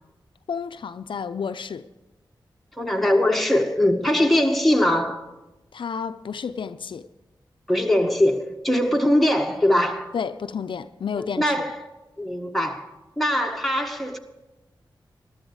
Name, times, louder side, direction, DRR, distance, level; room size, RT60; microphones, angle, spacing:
voice 1, 0.5-1.9 5.7-7.1 10.1-11.7, left 6 dB, 75° left, 0.5 m, -31 dB
voice 2, 2.8-5.3 7.7-10.1 11.1-11.9 12.2-12.9 13.2-14.2, left 1 dB, ahead, 1.7 m, -21 dB
13.5 x 12.5 x 4.8 m
cardioid pair, 45°, 9 cm